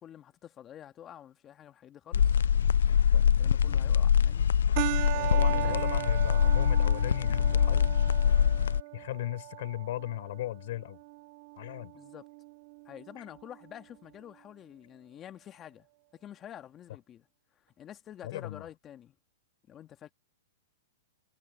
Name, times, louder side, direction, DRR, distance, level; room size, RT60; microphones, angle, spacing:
voice 1, 0.0-2.4 3.1-4.5 5.1-5.8 11.9-12.3 12.9-15.9 16.1-17.3 17.6-19.2 19.7-20.1, left 10 dB, 25° left, 1.9 m, -48 dB
sound 1, 2.1-8.8, left 8 dB, 85° left, 0.3 m, -24 dB
sound 2, 4.8-13.7, right 23 dB, 45° right, 0.6 m, -38 dB
voice 2, 5.2-7.9 8.9-11.0 11.6-11.9 18.2-18.7, left 14 dB, 60° left, 4.8 m, -37 dB
hypercardioid pair, 140°, 0 cm